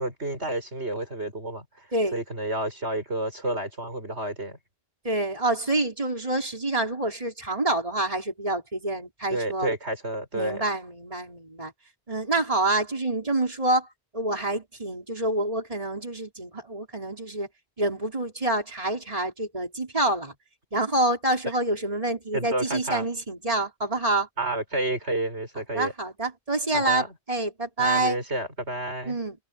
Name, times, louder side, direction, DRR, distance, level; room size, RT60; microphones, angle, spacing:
voice 1, 0.0-4.6 9.3-10.6 22.3-23.0 24.4-25.9 26.7-27.1 27.8-29.2, right 1 dB, 75° right, 6.7 m, -30 dB
voice 2, 1.9-2.2 5.0-9.7 10.3-11.7 12.1-17.5 17.8-20.3 20.7-24.3 25.7-28.2 29.0-29.4, right 2 dB, 30° right, 5.1 m, -27 dB
omnidirectional pair, 1.1 m